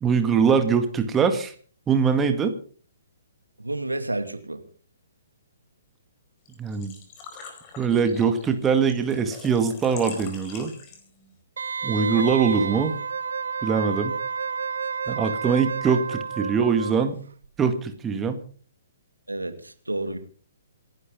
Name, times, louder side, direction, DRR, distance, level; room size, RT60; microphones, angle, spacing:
voice 1, 0.0-1.5 1.9-2.5 6.6-6.9 7.8-10.7 11.8-12.9 13.6-14.1 15.1-17.2 17.6-18.4, right 6 dB, 15° right, 8 dB, 2.0 m, -22 dB
voice 2, 3.6-4.6 19.3-20.2, right 2 dB, 80° right, 8 dB, 2.5 m, -30 dB
Engine / Trickle dribble / Fill (with liquid), 6.5-11.3, left 5 dB, 25° left, 4.9 m, -43 dB
Wind instrument woodwind instrument, 11.6-17.1 17.4-17.5, right 6 dB, 60° right, 0.9 m, -30 dB
27.5 x 12.0 x 3.9 m, 0.43 s
figure-of-eight pair, 125°, 0 cm